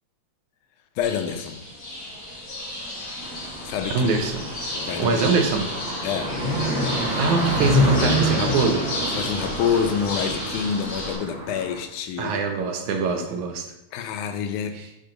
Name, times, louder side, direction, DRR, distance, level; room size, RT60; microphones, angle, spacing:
voice 1, 1.0-1.6 3.6-4.1 4.8-5.2 6.0-6.4 9.1-12.4 13.9-14.8, left 7 dB, 80° left, 6 dB, 2.1 m, -27 dB
sound 1, 1.0-11.1, left 1 dB, 40° left, 1.8 m, -32 dB
Car passing by, 3.2-11.8, equal, 35° right, 1.3 m, -27 dB
voice 2, 3.9-4.4 5.0-5.7 7.0-8.9 12.2-13.6, right 4 dB, 75° right, 4 dB, 2.1 m, -23 dB
10.0 x 3.4 x 3.8 m, 0.82 s
omnidirectional pair, 3.6 m